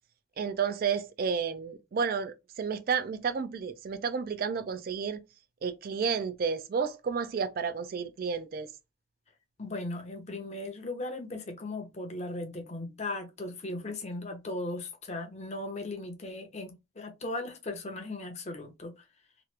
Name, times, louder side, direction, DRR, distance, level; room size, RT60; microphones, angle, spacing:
voice 1, 0.4-5.2 5.6-8.7, right 6 dB, 50° right, 0.3 m, -31 dB
voice 2, 9.6-18.9, left 2 dB, 35° left, 0.7 m, -37 dB
3.0 x 2.4 x 3.2 m
head